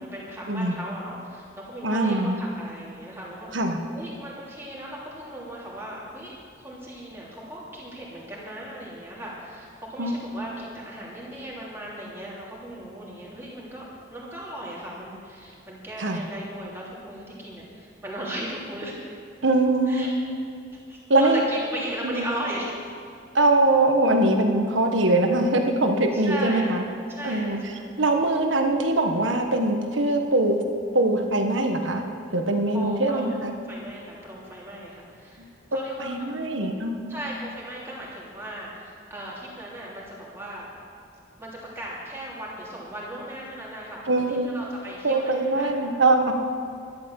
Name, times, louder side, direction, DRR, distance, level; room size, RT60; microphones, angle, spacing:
voice 1, 0.0-3.5 3.9-13.8 14.1-19.0 19.9-20.1 20.9-23.0 26.1-26.8 27.1-28.0 32.7-33.3 33.7-36.5 37.1-40.7 41.4-44.0 44.3-45.7, right 1 dB, 15° right, -5 dB, 3.2 m, -37 dB
voice 2, 1.8-2.4 3.5-3.8 10.0-10.1 16.0-16.2 19.4-20.1 21.1-21.4 22.0-22.2 23.3-26.8 27.2-27.6 28.0-30.6 30.9-32.0 32.3-33.6 35.4-35.5 36.0-37.1 44.1-44.5 45.0-46.3, right 2 dB, 85° right, 4 dB, 1.4 m, -22 dB
12.0 x 11.5 x 7.1 m, 2.3 s
head